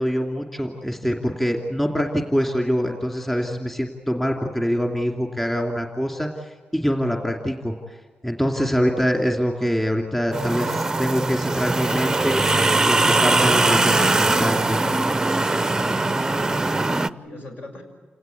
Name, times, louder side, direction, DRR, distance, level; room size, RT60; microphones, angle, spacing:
voice 1, 0.0-8.0 8.2-14.8, equal, 10° left, 2 dB, 2.6 m, -24 dB
sound 1, 10.3-17.1, right 2 dB, 15° right, 0.7 m, -21 dB
voice 2, 15.9-17.8, left 1 dB, 65° left, 3 dB, 6.6 m, -41 dB
28.5 x 18.5 x 8.4 m, 1.5 s
wide cardioid pair, 130°, 3 cm